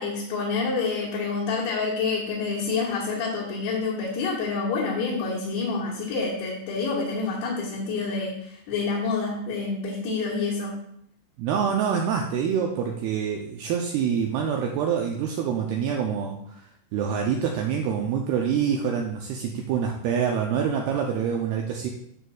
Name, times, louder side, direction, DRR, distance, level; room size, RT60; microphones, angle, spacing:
voice 1, 0.0-10.8, left 4 dB, 70° left, -7 dB, 3.2 m, -28 dB
voice 2, 11.4-16.7 16.9-21.9, right 7 dB, 85° right, 1 dB, 2.3 m, -26 dB
10.5 x 6.7 x 2.3 m, 0.71 s
omnidirectional pair, 5.2 m